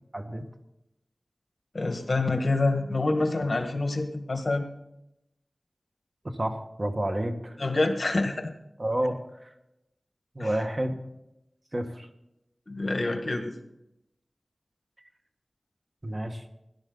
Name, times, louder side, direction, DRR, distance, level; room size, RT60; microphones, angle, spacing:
voice 1, 0.1-0.4 6.3-7.6 8.8-9.5 10.3-11.0 11.7-12.1 16.0-16.4, right 1 dB, 35° right, 5 dB, 1.6 m, -30 dB
voice 2, 1.7-4.7 7.6-8.5 10.4-10.5 12.7-13.5, left 2 dB, 60° left, 5 dB, 1.7 m, -27 dB
17.5 x 11.5 x 4.0 m, 0.86 s
wide cardioid pair, 50°, 0 cm